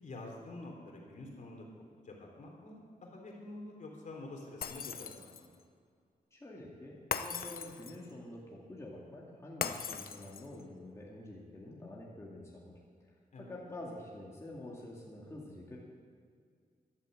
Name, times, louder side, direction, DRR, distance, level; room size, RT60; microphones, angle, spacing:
voice 1, 0.0-1.7 2.0-5.5 13.3-13.5, left 2 dB, 55° left, 0 dB, 3.3 m, -47 dB
Shatter, 4.6-5.6 7.1-8.1 9.6-10.6, left 7 dB, 75° left, 0.9 m, -39 dB
voice 2, 6.3-12.8 13.5-15.8, left 1 dB, 20° left, -4 dB, 2.2 m, -47 dB
14.0 x 12.0 x 7.7 m, 2.1 s
wide cardioid pair, 145°, 15 cm